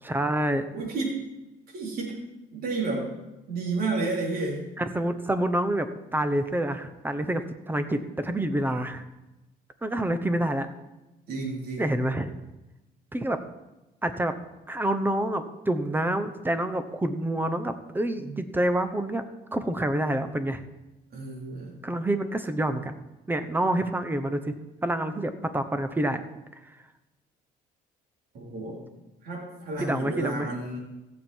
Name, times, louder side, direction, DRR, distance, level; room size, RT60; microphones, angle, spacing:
voice 1, 0.0-0.6 4.8-9.0 9.8-10.7 11.8-12.3 13.1-13.4 14.0-14.3 14.7-19.2 19.5-20.6 21.8-22.9 23.3-24.5 24.8-26.2 26.6-26.8 29.8-30.5, right 1 dB, 10° right, 10 dB, 1.0 m, -27 dB
voice 2, 0.7-1.2 1.7-2.2 2.5-3.1 3.5-4.6 11.3-12.0 21.1-21.8 28.3-28.8 29.2-30.8, right 3 dB, 65° right, -3 dB, 4.2 m, -31 dB
16.0 x 7.4 x 4.6 m, 1.0 s
cardioid pair, 110°, 17 cm